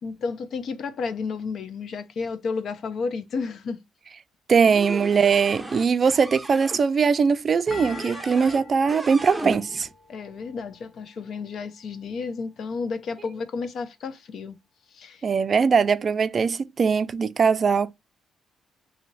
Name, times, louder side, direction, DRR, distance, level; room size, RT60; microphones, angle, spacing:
voice 1, 0.0-3.8 10.1-14.6 14.9-15.2, left 4 dB, 65° left, 0.5 m, -32 dB
voice 2, 4.5-9.9 15.2-17.9, right 5 dB, 45° right, 0.3 m, -21 dB
sound 1, 4.6-6.8 7.7-8.6 8.9-9.9, right 1 dB, 5° right, 0.7 m, -35 dB
sound 2, 7.7-10.9, left 6 dB, 25° left, 0.8 m, -45 dB
2.7 x 2.4 x 3.1 m
cardioid pair, 90°, 0 cm